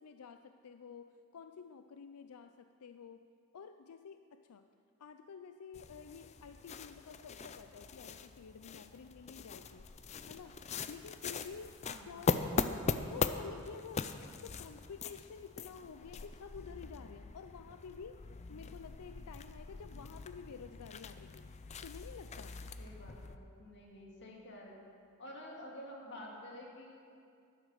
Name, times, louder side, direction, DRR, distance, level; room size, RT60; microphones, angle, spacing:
voice 1, 0.0-3.3 3.5-4.6 5.0-9.9 10.3-10.6 10.9-14.1 14.4-21.5 21.8-22.6, left 6 dB, 90° left, 9 dB, 0.5 m, -50 dB
sound 1, 5.7-23.4, left 4 dB, 30° left, 0.4 m, -41 dB
voice 2, 11.8-12.4 18.5-18.6 22.8-24.8 25.2-26.9, left 1 dB, 55° left, -2 dB, 2.4 m, -50 dB
12.5 x 10.5 x 6.6 m, 2.5 s
head